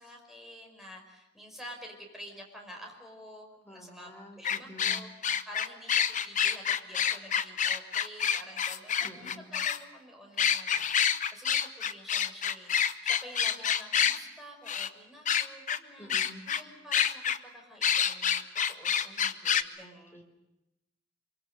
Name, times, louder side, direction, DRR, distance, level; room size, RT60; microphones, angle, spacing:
voice 1, 0.0-5.1 5.4-20.2, equal, ahead, 1 dB, 5.3 m, -49 dB
voice 2, 3.6-5.0 9.0-9.5 16.0-16.4 19.8-20.2, equal, 15° left, 2 dB, 3.8 m, -49 dB
sound 1, 4.4-9.8 10.4-14.2 14.7-14.9 15.2-15.8 16.1-16.6 16.9-17.4 17.8-19.6, left 8 dB, 45° left, 0.9 m, -27 dB
25.5 x 23.5 x 6.8 m, 0.91 s
head